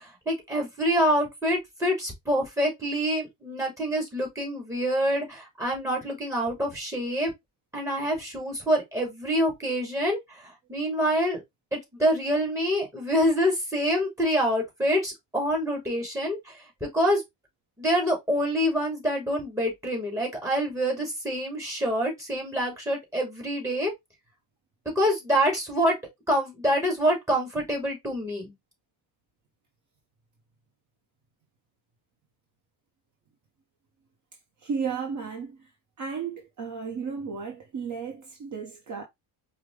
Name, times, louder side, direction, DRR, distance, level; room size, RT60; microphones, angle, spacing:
voice 1, 0.0-7.3 7.7-11.4 11.7-16.4 16.8-17.2 17.8-23.9 24.9-26.0 26.3-28.5, equal, 5° right, 2.5 m, -26 dB
voice 2, 34.6-35.6 36.0-39.0, right 6 dB, 45° right, 0.9 m, -33 dB
5.0 x 2.3 x 3.2 m
cardioid pair, 120°, 41 cm